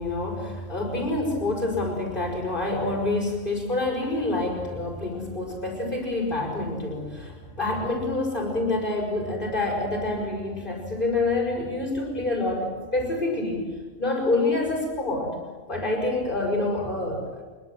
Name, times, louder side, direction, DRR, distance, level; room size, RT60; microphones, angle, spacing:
voice 1, 0.0-13.7 14.0-15.4 15.7-17.4, left 2 dB, 35° left, -4 dB, 5.8 m, -27 dB
24.5 x 23.5 x 7.8 m, 1.4 s
omnidirectional pair, 1.4 m